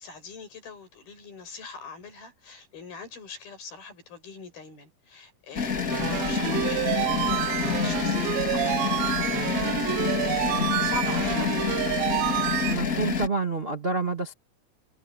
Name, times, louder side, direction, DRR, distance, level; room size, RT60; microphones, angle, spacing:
voice 1, 0.0-9.3 10.2-12.1, left 4 dB, 80° left, 7.9 m, -42 dB
sound 1, 5.5-13.3, left 6 dB, 30° left, 2.1 m, -28 dB
sound 2, 5.9-12.7, right 17 dB, 80° right, 2.5 m, -28 dB
voice 2, 12.7-14.3, right 4 dB, 35° right, 0.9 m, -28 dB
omnidirectional pair, 4.2 m